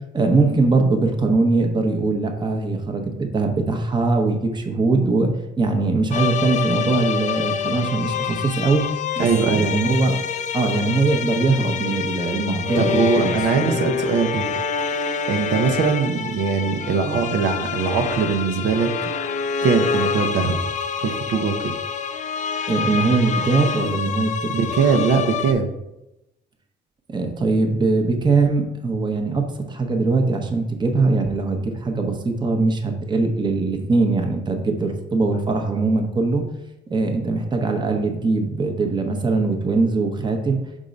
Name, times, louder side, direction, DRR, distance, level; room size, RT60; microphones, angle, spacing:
voice 1, 0.1-8.9 9.2-10.2 10.5-13.8 22.7-24.5 27.1-36.4 36.9-40.6, right 3 dB, 25° right, 4 dB, 0.9 m, -21 dB
sound 1, 6.1-25.5, left 6 dB, 40° left, 0.4 m, -27 dB
voice 2, 9.2-9.7 12.8-14.4 15.3-19.1 19.6-20.6 21.0-21.7 24.5-25.7, right 5 dB, 70° right, 5 dB, 0.7 m, -21 dB
5.3 x 3.7 x 5.1 m, 0.92 s
cardioid pair, 125°, 19 cm